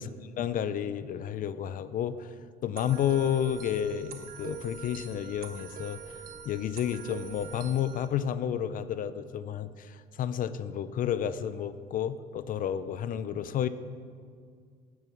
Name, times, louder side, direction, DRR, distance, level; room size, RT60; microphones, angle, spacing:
voice 1, 0.4-2.3 2.6-6.0 6.5-13.7, left 9 dB, 55° left, 14 dB, 0.5 m, -31 dB
sound 1, 2.8-8.1, right 7 dB, 55° right, 1.2 m, -44 dB
11.0 x 9.1 x 6.0 m, 2.1 s
cardioid pair, 110°, 17 cm